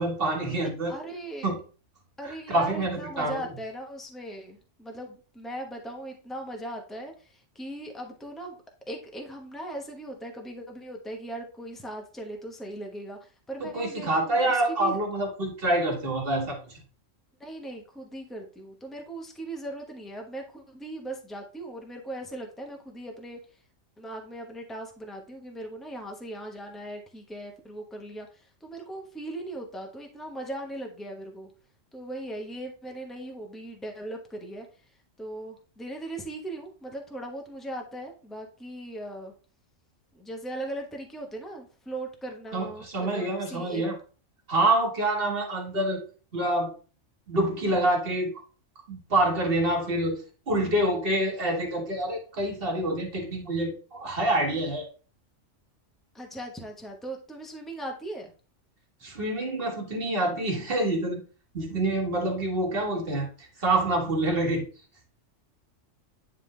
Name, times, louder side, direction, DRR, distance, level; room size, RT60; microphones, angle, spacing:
voice 1, 0.0-1.0 1.4-1.6 2.2-3.4 13.6-16.8 42.5-43.9 44.5-46.0 46.3-46.7 47.3-48.4 48.9-50.2 50.5-54.9 59.0-61.2 61.5-64.6, right 1 dB, 45° right, 0 dB, 1.9 m, -27 dB
voice 2, 0.5-1.5 2.2-8.6 8.9-15.0 17.4-23.4 24.0-28.3 28.6-31.5 31.9-34.7 35.2-39.3 40.1-43.8 56.1-58.3, right 1 dB, ahead, 2 dB, 0.9 m, -39 dB
9.5 x 3.7 x 3.3 m, 0.37 s
omnidirectional pair, 1.3 m